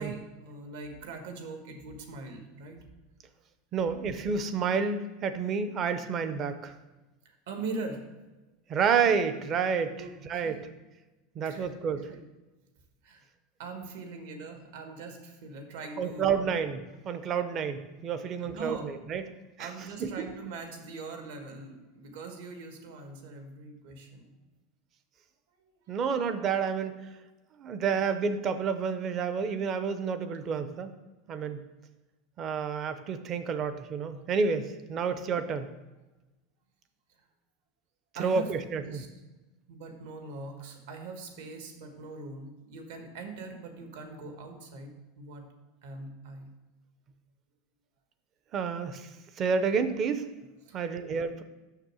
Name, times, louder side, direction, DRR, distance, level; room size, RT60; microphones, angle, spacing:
voice 1, 0.0-2.8 7.2-8.0 10.0-10.7 11.4-11.7 12.1-12.2 13.0-13.2 13.6-16.7 18.4-18.9 19.6-24.3 38.1-38.5 38.8-39.1 39.7-45.4 45.8-46.5 50.6-50.9, right 3 dB, 70° right, 4 dB, 1.6 m, -42 dB
voice 2, 3.7-6.7 8.7-10.7 11.4-12.0 16.0-19.2 19.6-19.7 20.0-20.3 25.9-26.9 27.6-30.9 31.3-31.6 32.4-35.7 38.2-39.0 48.5-49.1 49.4-50.3 50.7-51.4, right 6 dB, 25° right, 11 dB, 0.5 m, -29 dB
6.5 x 6.4 x 6.1 m, 1.1 s
supercardioid pair, 175°, 0 cm